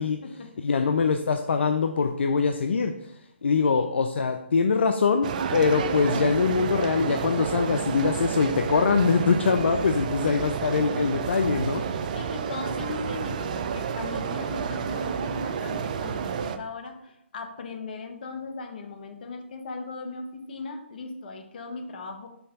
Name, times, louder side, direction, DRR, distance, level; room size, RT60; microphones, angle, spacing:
voice 1, 0.6-11.9, left 5 dB, 65° left, 7 dB, 0.4 m, -23 dB
sound 1, 5.2-16.6, right 7 dB, 40° right, 0.4 m, -30 dB
voice 2, 12.1-22.3, left 3 dB, 50° left, 5 dB, 1.0 m, -38 dB
5.8 x 3.3 x 5.3 m, 0.80 s
figure-of-eight pair, 145°, 7 cm